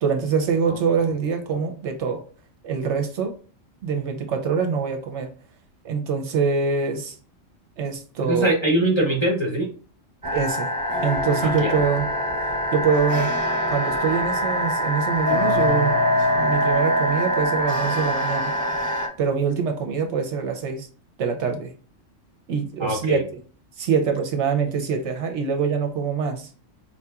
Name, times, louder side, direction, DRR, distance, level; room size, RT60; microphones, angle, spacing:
voice 1, 0.0-2.2 2.6-3.3 3.8-5.3 5.8-7.2 7.8-8.5 10.3-10.7 11.0-12.1 12.7-13.3 13.7-15.9 16.3-18.5 19.2-20.9 21.2-21.7 22.5-23.4 23.8-26.5, right 6 dB, 70° right, 4 dB, 0.8 m, -24 dB
voice 2, 8.2-9.7 11.4-11.8 22.8-23.2, right 1 dB, 25° left, -2 dB, 0.7 m, -22 dB
sound 1, 10.2-19.1, equal, 20° right, 0.6 m, -23 dB
4.4 x 2.8 x 2.3 m, 0.40 s
omnidirectional pair, 1.3 m